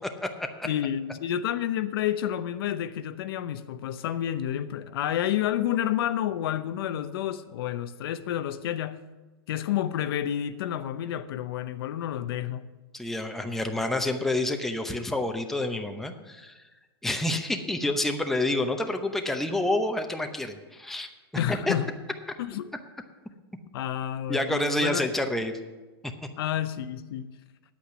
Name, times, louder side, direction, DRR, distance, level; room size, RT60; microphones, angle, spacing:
voice 1, 0.0-0.7 12.9-16.6 17.0-21.1 21.5-21.7 24.3-25.6 26.0-26.1, left 1 dB, ahead, 0.7 m, -28 dB
voice 2, 0.6-9.0 9.5-12.7 21.3-21.9 22.4-22.7 23.7-25.0 26.4-27.3, left 11 dB, 65° left, 0.6 m, -30 dB
10.0 x 8.3 x 6.1 m
supercardioid pair, 140°, 13 cm